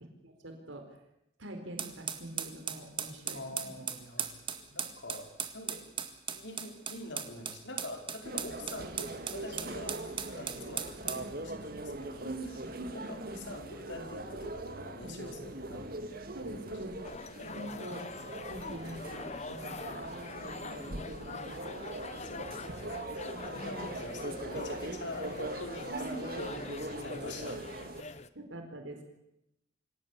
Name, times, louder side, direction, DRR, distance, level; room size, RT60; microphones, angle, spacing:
voice 1, 0.2-1.0 1.4-3.9 4.2-4.3 12.2-13.4 15.7-15.8 16.3-17.2 17.5-18.1 18.5-20.1 20.4-21.7 23.5-23.9 25.9-26.2 28.3-29.0, right 1 dB, 80° right, 4 dB, 4.5 m, -44 dB
sound 1, 1.8-11.3, right 7 dB, 25° right, 1.9 m, -38 dB
voice 2, 3.3-5.8 6.3-10.0 10.4-12.3 12.9-16.6 17.4-17.9 22.2-28.2, left 1 dB, 65° left, 4 dB, 5.3 m, -45 dB
sound 2, 8.2-28.0, right 1 dB, 50° right, 2.3 m, -41 dB
sound 3, 17.0-28.3, left 4 dB, 35° left, 0.9 m, -44 dB
26.5 x 17.5 x 8.5 m, 0.85 s
head